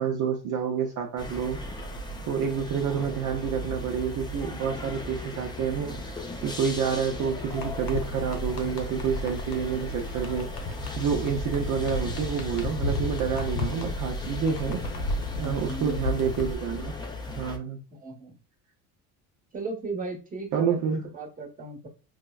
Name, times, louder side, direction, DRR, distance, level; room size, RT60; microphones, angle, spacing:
voice 1, 0.0-1.6 2.3-10.5 11.0-14.8 15.4-17.0 17.3-17.8 20.5-21.0, right 7 dB, 55° right, 1 dB, 0.6 m, -28 dB
sound 1, 1.2-17.6, left 2 dB, 10° left, 0.4 m, -37 dB
sound 2, 7.5-16.5, left 1 dB, 75° left, 1.1 m, -33 dB
voice 2, 15.1-16.0 17.9-18.4 19.5-21.9, right 3 dB, 20° right, 0 dB, 1.1 m, -37 dB
4.3 x 2.1 x 2.3 m, 0.34 s
cardioid pair, 115°, 37 cm